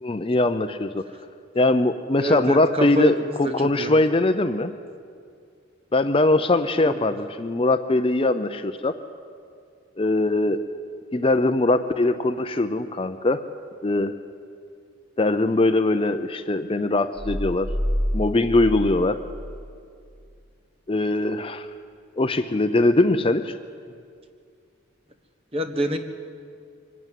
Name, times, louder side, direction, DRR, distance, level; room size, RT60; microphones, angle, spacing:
voice 1, 0.0-1.0 1.5-4.7 5.9-9.0 10.0-10.6 11.1-13.4 13.8-14.1 15.2-17.7 18.1-19.2 20.9-21.7 22.2-23.6, left 2 dB, 30° left, 10 dB, 0.6 m, -21 dB
voice 2, 2.2-4.0 6.8-7.0 25.5-26.0, right 1 dB, 30° right, 6 dB, 1.3 m, -26 dB
sound 1, 17.1-19.7 20.0-20.2, equal, 10° left, 6.9 m, -28 dB
24.0 x 12.0 x 9.2 m, 2.3 s
head